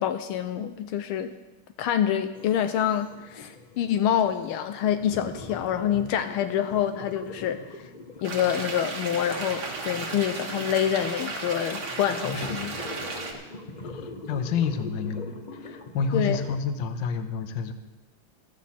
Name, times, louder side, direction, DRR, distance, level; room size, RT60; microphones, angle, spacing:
voice 1, 0.0-1.3 1.8-7.6 8.2-12.8 16.1-16.4, left 10 dB, 85° left, 9 dB, 1.5 m, -26 dB
Underwater scuba diver, 2.3-16.6, left 2 dB, 35° left, 0.7 m, -42 dB
sound 1, 8.2-13.3, right 3 dB, 70° right, 2.5 m, -34 dB
voice 2, 13.8-17.7, left 5 dB, 65° left, 8 dB, 1.5 m, -29 dB
14.0 x 13.5 x 4.3 m, 1.1 s
omnidirectional pair, 2.4 m